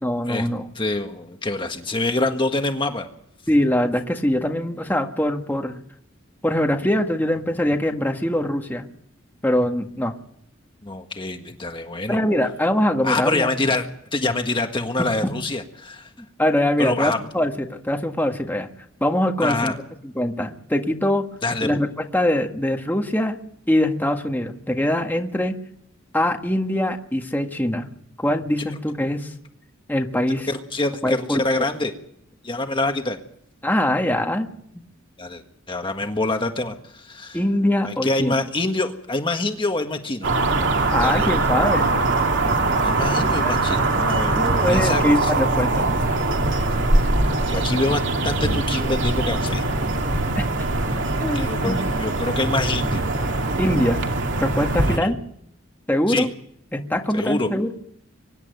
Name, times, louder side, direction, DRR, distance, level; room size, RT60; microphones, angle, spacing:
voice 1, 0.0-0.7 3.5-5.8 6.4-8.8 9.4-10.1 12.1-13.5 15.0-15.1 16.4-18.7 19.0-19.7 20.2-21.3 21.6-21.9 22.1-23.4 23.7-25.5 26.1-27.9 28.2-29.3 29.9-30.5 31.0-31.4 33.6-34.5 34.8-34.9 37.3-38.3 40.9-42.0 43.4-43.5 44.3-45.9 51.2-51.9 53.6-54.0 54.4-55.2 55.9-56.3 56.7-57.7, left 1 dB, 10° left, 3 dB, 1.7 m, -22 dB
voice 2, 0.7-3.1 10.8-12.2 13.0-13.8 14.1-16.1 16.8-17.2 19.4-19.8 21.4-21.8 30.5-31.9 32.4-33.2 35.2-35.4 35.7-37.4 37.8-40.3 41.0-41.3 42.8-45.3 47.5-49.6 51.3-53.0 54.9-55.1 56.1-56.3 57.1-57.5, left 2 dB, 25° left, 5 dB, 1.6 m, -25 dB
sound 1, 40.2-55.0, right 2 dB, 60° right, 2.6 m, -22 dB
24.5 x 11.0 x 9.5 m, 0.70 s
head